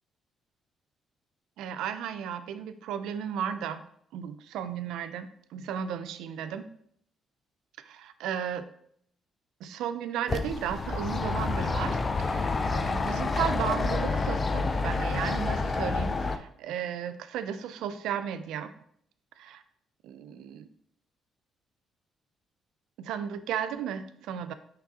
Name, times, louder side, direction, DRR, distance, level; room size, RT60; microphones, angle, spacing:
voice 1, 1.6-3.9 4.1-6.6 7.9-8.7 9.6-18.7 19.4-19.6 20.0-20.7 23.0-24.5, right 8 dB, 90° right, 11 dB, 0.3 m, -34 dB
sound 1, 10.3-16.4, left 3 dB, 30° left, 0.4 m, -28 dB
5.9 x 3.1 x 2.7 m, 0.67 s
cardioid pair, 90°, 0 cm